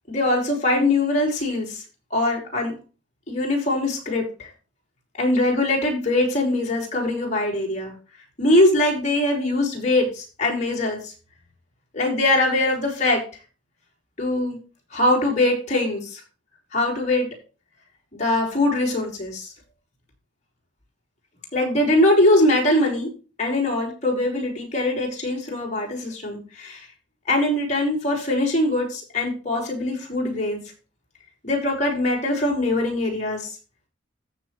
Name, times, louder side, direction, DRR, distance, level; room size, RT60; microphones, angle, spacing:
voice 1, 0.1-1.8 2.1-2.7 3.3-4.5 5.2-7.9 8.4-11.1 11.9-13.2 14.2-14.6 14.9-16.2 16.7-17.3 18.2-19.5 21.5-23.1 23.4-26.9 27.3-30.6 31.4-33.5, left 1 dB, 40° left, 0 dB, 6.0 m, -22 dB
14.5 x 7.1 x 3.4 m, 0.33 s
head